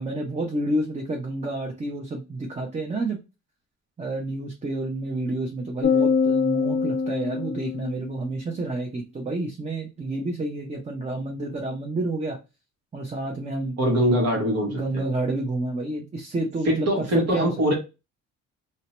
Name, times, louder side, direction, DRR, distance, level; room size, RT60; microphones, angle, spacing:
voice 1, 0.0-3.2 4.0-12.4 12.9-13.8 14.7-17.7, right 2 dB, 20° right, 1 dB, 0.6 m, -29 dB
sound 1, 5.8-8.4, left 5 dB, 30° left, 0.4 m, -24 dB
voice 2, 13.8-15.0 16.6-17.7, equal, 60° right, 0 dB, 1.2 m, -22 dB
2.7 x 2.2 x 2.9 m, 0.27 s
cardioid pair, 90°, 30 cm